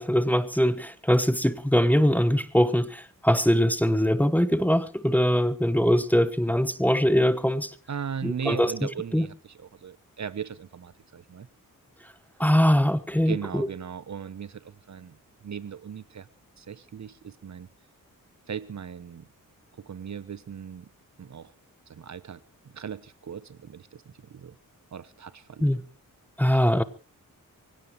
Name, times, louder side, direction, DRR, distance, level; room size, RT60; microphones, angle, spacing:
voice 1, 0.0-7.7 8.2-9.3 12.4-13.7 25.6-25.8 26.4-26.8, equal, 5° left, 1.0 m, -22 dB
voice 2, 7.9-11.5 13.3-15.2 15.4-16.3 16.6-17.7 18.5-19.3 19.8-20.9 21.2-21.5 21.9-22.4 22.6-24.5 24.9-25.7 26.4-26.6, right 7 dB, 55° right, 0.9 m, -38 dB
24.0 x 17.0 x 3.1 m
wide cardioid pair, 100°, 34 cm